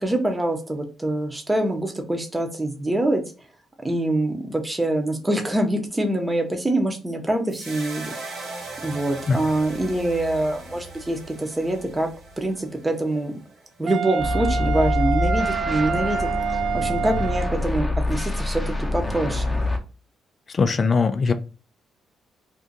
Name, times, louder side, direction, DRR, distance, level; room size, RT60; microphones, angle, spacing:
voice 1, 0.0-3.2 3.8-8.4 8.8-12.1 12.4-13.3 13.8-16.3 16.7-19.6, right 1 dB, 15° right, 4 dB, 0.7 m, -25 dB
sound 1, 7.5-13.9, right 3 dB, 80° right, 1.2 m, -39 dB
Wind instrument woodwind instrument, 13.9-17.6, right 7 dB, 55° right, 0.4 m, -26 dB
sound 2, 14.2-19.8, left 2 dB, 15° left, 0.8 m, -26 dB
voice 2, 20.5-21.3, left 4 dB, 40° left, 10 dB, 0.3 m, -20 dB
2.6 x 2.4 x 3.9 m, 0.34 s
cardioid pair, 90°, 0 cm